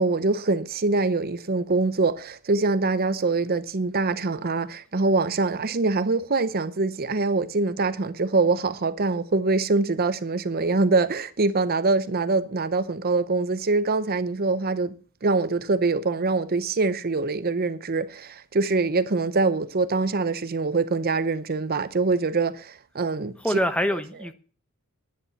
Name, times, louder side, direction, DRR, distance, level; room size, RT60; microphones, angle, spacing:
voice 1, 0.0-14.9 15.2-23.3, right 3 dB, 45° right, 0.7 m, -24 dB
voice 2, 23.4-24.3, equal, 5° left, 1.0 m, -25 dB
11.0 x 10.0 x 7.0 m
head